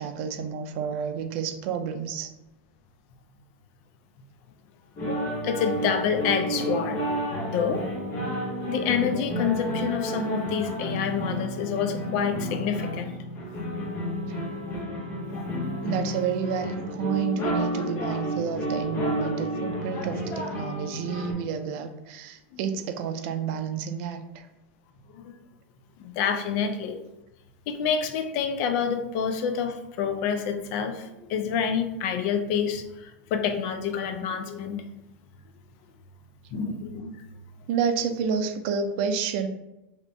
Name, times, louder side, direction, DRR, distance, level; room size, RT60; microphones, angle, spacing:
voice 1, 0.0-2.3 14.2-14.7 15.8-24.5 37.7-39.5, right 6 dB, 60° right, 8 dB, 0.4 m, -30 dB
sound 1, 5.0-21.3, equal, 40° left, 0.9 m, -31 dB
voice 2, 5.4-7.1 7.5-7.9 8.7-13.2 14.7-14.8 15.3-15.9 22.5-22.6 25.1-25.3 26.0-27.0 27.7-34.8 36.5-37.2, left 7 dB, 60° left, 7 dB, 0.4 m, -28 dB
2.8 x 2.6 x 3.3 m, 0.93 s
hypercardioid pair, 105°, 7 cm